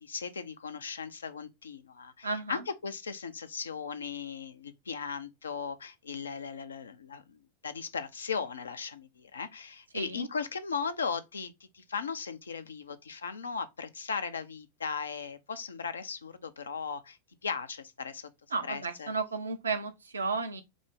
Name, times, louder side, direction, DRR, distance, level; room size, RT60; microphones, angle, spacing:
voice 1, 0.0-7.4 7.6-17.2 17.4-18.3 18.7-19.1, left 5 dB, 70° left, 0.5 m, -37 dB
voice 2, 2.2-2.6 9.9-10.3 18.5-20.6, right 4 dB, 75° right, 0.6 m, -33 dB
4.9 x 2.0 x 3.7 m
figure-of-eight pair, 90°, 0 cm